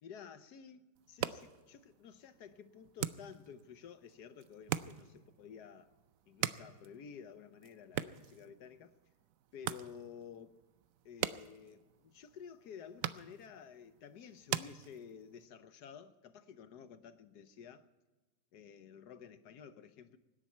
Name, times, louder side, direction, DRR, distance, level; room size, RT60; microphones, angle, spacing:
voice 1, 0.0-5.9 6.3-8.9 9.5-10.6 11.0-17.9 18.5-20.2, left 7 dB, 70° left, 1.3 m, -52 dB
sound 1, 1.0-15.5, right 11 dB, 65° right, 0.8 m, -44 dB
25.0 x 10.5 x 4.5 m
omnidirectional pair, 1.9 m